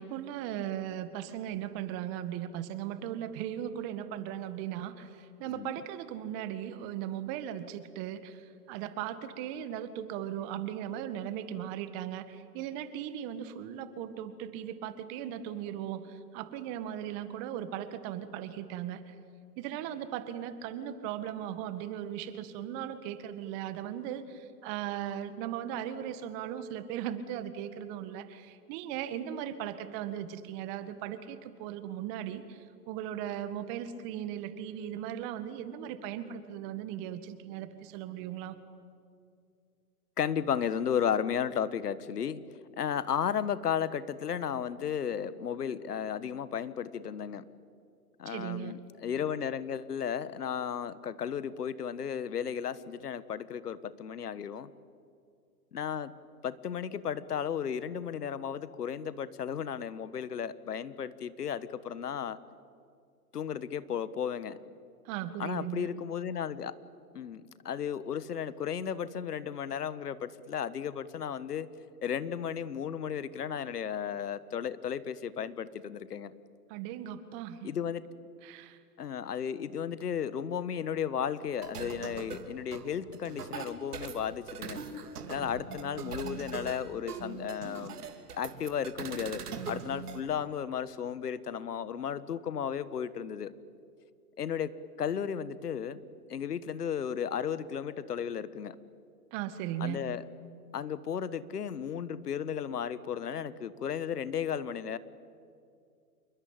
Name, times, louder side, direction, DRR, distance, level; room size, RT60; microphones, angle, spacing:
voice 1, 0.0-19.1 19.6-38.6 48.3-48.8 65.1-65.9 76.7-77.7 78.4-78.8 99.3-100.0, right 10 dB, 30° right, 12 dB, 1.8 m, -38 dB
voice 2, 40.2-42.4 42.8-47.4 48.2-54.7 55.7-56.1 56.4-62.4 63.3-64.6 65.4-66.8 67.1-71.7 72.0-76.3 77.6-78.1 79.0-84.8 85.3-88.0 88.3-93.5 94.4-96.0 96.3-98.8 99.8-100.2 100.7-105.0, left 8 dB, 75° left, 16 dB, 1.5 m, -34 dB
sound 1, 81.5-90.2, right 5 dB, 70° right, 3.0 m, -41 dB
28.0 x 22.5 x 8.9 m, 2.3 s
hypercardioid pair, 130°, 47 cm